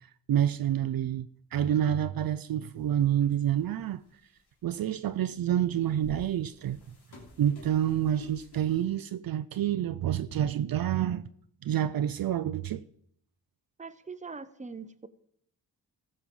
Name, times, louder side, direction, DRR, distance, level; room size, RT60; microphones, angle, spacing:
voice 1, 0.3-4.0 4.6-6.8 7.4-11.2 11.6-12.8, right 10 dB, 60° right, 0.5 m, -28 dB
sound 1, 2.7-2.8 3.2-3.7 4.4-4.5 5.5-8.9, left 2 dB, 75° left, 3.1 m, -49 dB
voice 2, 13.8-15.1, right 4 dB, 20° right, 0.8 m, -42 dB
14.5 x 5.6 x 7.1 m
cardioid pair, 65°, 40 cm